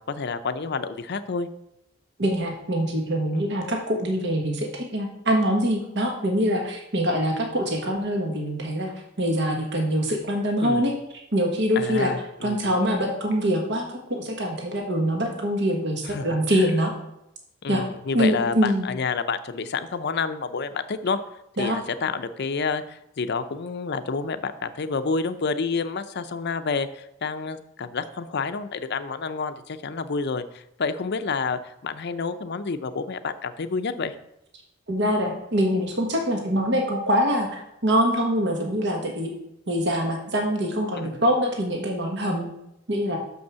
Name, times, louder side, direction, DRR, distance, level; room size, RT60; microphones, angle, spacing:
voice 1, 0.0-1.5 3.3-3.4 10.6-10.9 11.8-12.7 16.0-16.7 17.6-21.2 21.6-34.1 41.0-41.1, left 4 dB, 55° left, 11 dB, 0.6 m, -29 dB
voice 2, 2.2-8.9 9.2-10.9 11.3-12.1 12.4-13.8 14.1-16.9 17.7-17.8 18.1-18.9 21.6-21.8 34.9-39.3 39.7-42.5 42.9-43.2, equal, 60° right, 1 dB, 1.4 m, -24 dB
6.4 x 5.3 x 6.9 m, 0.82 s
head